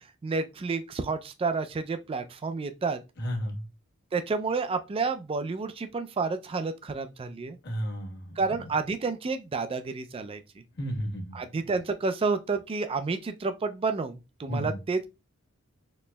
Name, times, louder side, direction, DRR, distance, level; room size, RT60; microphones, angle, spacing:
voice 1, 0.2-3.0 4.1-7.6 8.4-10.4 11.3-15.1, right 4 dB, 25° right, 0.3 m, -30 dB
voice 2, 3.2-3.6 7.6-8.4 10.8-11.4 14.5-14.8, equal, 55° left, 1.2 m, -32 dB
4.2 x 3.1 x 2.2 m
head